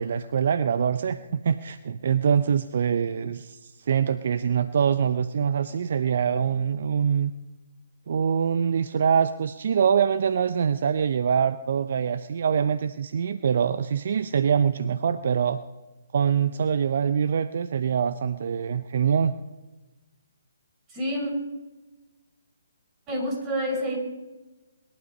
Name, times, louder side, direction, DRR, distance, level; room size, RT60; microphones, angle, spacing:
voice 1, 0.0-7.3 8.1-15.6 16.1-19.4, right 7 dB, 55° right, 12 dB, 0.7 m, -24 dB
voice 2, 20.9-21.3 23.1-24.0, equal, 20° right, 1 dB, 4.8 m, -28 dB
21.5 x 12.0 x 5.4 m, 1.2 s
figure-of-eight pair, 140°, 0 cm